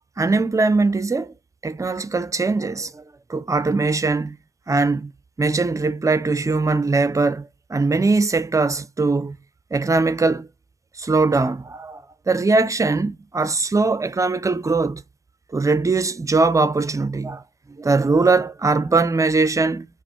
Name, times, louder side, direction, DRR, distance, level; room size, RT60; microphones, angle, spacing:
voice 1, 0.2-1.3 1.6-3.0 3.3-4.4 4.7-5.1 5.4-9.4 9.7-10.5 11.0-15.0 15.5-17.4 17.8-19.9, right 3 dB, 15° right, 0.4 m, -21 dB
5.0 x 2.0 x 2.8 m
cardioid pair, 90°, 20 cm